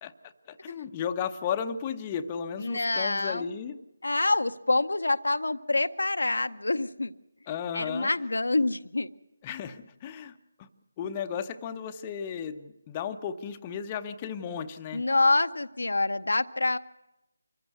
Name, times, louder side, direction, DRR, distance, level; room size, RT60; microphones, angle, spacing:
voice 1, 0.0-3.8 7.5-8.1 9.4-10.7 11.0-15.1, left 7 dB, 20° left, 7 dB, 0.7 m, -35 dB
voice 2, 2.6-3.4 4.0-7.1 7.7-9.1 14.9-16.8, left 2 dB, 65° left, 10 dB, 0.7 m, -26 dB
25.0 x 15.0 x 8.1 m, 0.93 s
figure-of-eight pair, 155°, 0 cm